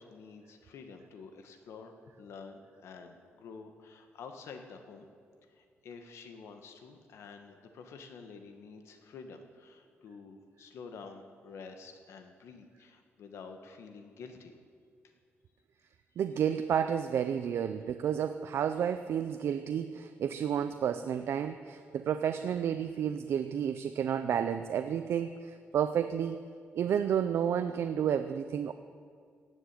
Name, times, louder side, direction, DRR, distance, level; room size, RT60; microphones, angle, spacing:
voice 1, 0.0-5.1 5.5-14.5, left 5 dB, 85° left, 6 dB, 1.6 m, -49 dB
voice 2, 16.2-26.4 26.8-28.7, right 8 dB, 70° right, 9 dB, 0.5 m, -31 dB
17.0 x 7.4 x 9.1 m, 2.2 s
wide cardioid pair, 165°, 5 cm